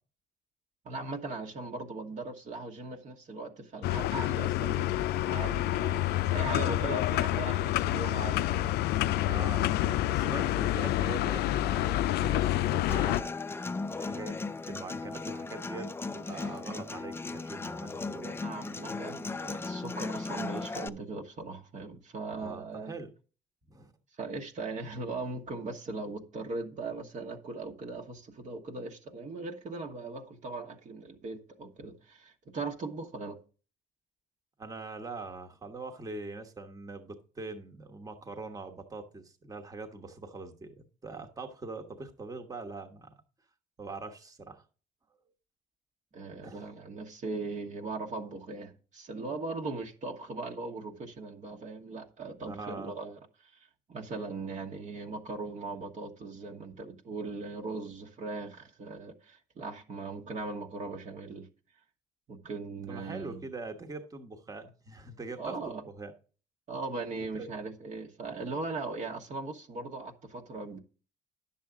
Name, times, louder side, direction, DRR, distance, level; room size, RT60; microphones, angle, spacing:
voice 1, 0.8-8.8 16.1-16.2 17.6-17.7 18.2-22.9 24.2-33.4 46.1-61.5 62.3-63.4 65.4-65.8 66.7-70.8, right 3 dB, 45° right, 1.3 m, -39 dB
sound 1, 3.8-13.2, left 14 dB, 75° left, 0.4 m, -28 dB
voice 2, 9.1-13.3 13.8-18.4 22.4-23.1 23.7-23.9 34.6-43.1 43.8-44.6 46.4-46.6 52.4-52.9 62.9-66.1 67.3-67.5, right 3 dB, 20° right, 1.2 m, -43 dB
Human voice / Acoustic guitar, 12.9-20.9, left 3 dB, 15° left, 0.4 m, -37 dB
10.5 x 7.2 x 3.7 m
cardioid pair, 110°, 17 cm